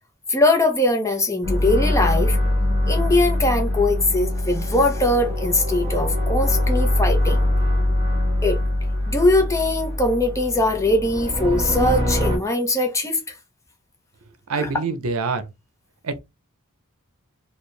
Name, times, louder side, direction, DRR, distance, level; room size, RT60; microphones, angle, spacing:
voice 1, 0.3-2.4 2.9-7.4 8.4-8.6 9.1-13.3 14.5-14.7, left 2 dB, 15° left, 0.9 m, -21 dB
sound 1, 1.4-12.4, left 1 dB, 25° right, 1.7 m, -23 dB
voice 2, 14.5-15.5 16.0-16.2, right 4 dB, 80° right, 0.6 m, -25 dB
4.3 x 2.4 x 3.2 m
head